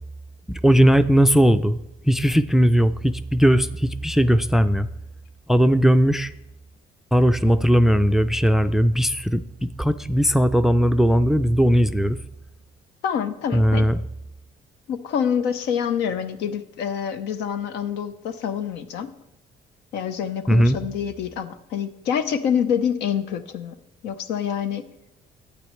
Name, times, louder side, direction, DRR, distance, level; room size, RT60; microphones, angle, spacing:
voice 1, 0.5-1.8 2.0-4.9 5.5-6.3 7.1-12.2 13.5-14.0 20.5-20.8, equal, ahead, 13 dB, 0.3 m, -18 dB
voice 2, 13.0-13.9 14.9-19.1 19.9-23.8 24.0-24.8, left 8 dB, 85° left, 10 dB, 0.8 m, -26 dB
12.0 x 8.4 x 3.2 m, 0.86 s
cardioid pair, 110°, 17 cm